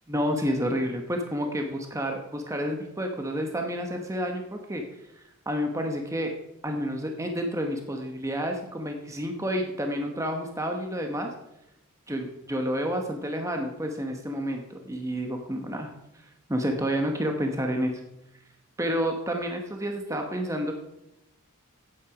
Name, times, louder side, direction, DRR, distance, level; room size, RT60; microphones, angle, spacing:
voice 1, 0.1-4.8 5.5-6.3 6.6-11.3 12.1-15.9 16.5-18.0 18.8-20.8, equal, 15° right, 3 dB, 1.2 m, -29 dB
15.0 x 8.8 x 5.0 m, 0.87 s
head